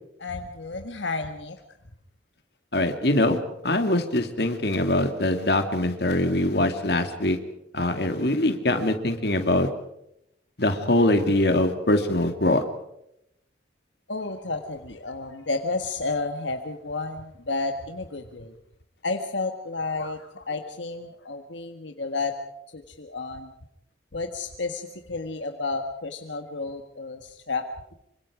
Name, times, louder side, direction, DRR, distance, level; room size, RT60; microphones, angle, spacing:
voice 1, 0.2-1.6 14.1-18.5 19.0-22.3 22.7-23.5 24.1-27.6, left 3 dB, 75° left, 5 dB, 1.6 m, -31 dB
voice 2, 2.7-3.4 3.6-7.4 7.7-9.7 10.6-12.6, left 1 dB, 60° left, 7 dB, 2.4 m, -23 dB
27.0 x 25.0 x 5.0 m, 0.80 s
head